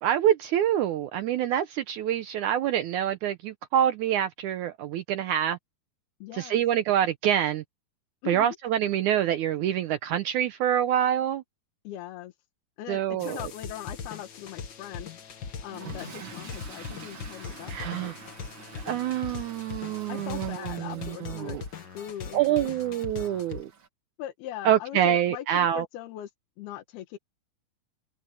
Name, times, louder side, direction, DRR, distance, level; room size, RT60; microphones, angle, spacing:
voice 1, 0.0-5.6 6.3-7.6 8.3-11.4 12.9-13.4 17.7-18.2 18.9-21.6 22.3-23.7 24.6-25.8, right 10 dB, 75° right, 1.8 m, -26 dB
voice 2, 6.2-6.6 8.2-8.6 11.8-12.3 12.8-15.4 15.6-18.1 20.1-21.6 21.9-22.7 24.2-26.3 26.6-27.2, left 12 dB, 90° left, 3.3 m, -40 dB
sound 1, 13.2-23.6, left 6 dB, 60° left, 1.1 m, -40 dB
Toilet flush / Fill (with liquid), 15.6-23.9, right 5 dB, 45° right, 1.8 m, -48 dB
omnidirectional pair, 4.3 m